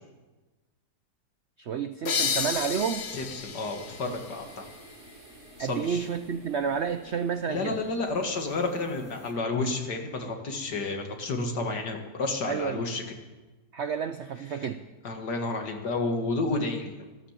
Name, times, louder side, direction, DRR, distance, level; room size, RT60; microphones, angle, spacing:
voice 1, 1.6-3.1 5.6-7.8 12.5-12.8 13.7-14.8, right 7 dB, 70° right, 10 dB, 0.6 m, -30 dB
sound 1, 2.1-5.5, left 6 dB, 40° left, 1.2 m, -32 dB
sound 2, 2.1-9.3, right 1 dB, 50° right, 3.7 m, -51 dB
voice 2, 3.1-4.7 5.6-6.1 7.5-13.0 15.0-17.1, left 3 dB, 65° left, 4 dB, 2.5 m, -31 dB
14.0 x 13.5 x 7.4 m, 1.2 s
omnidirectional pair, 1.9 m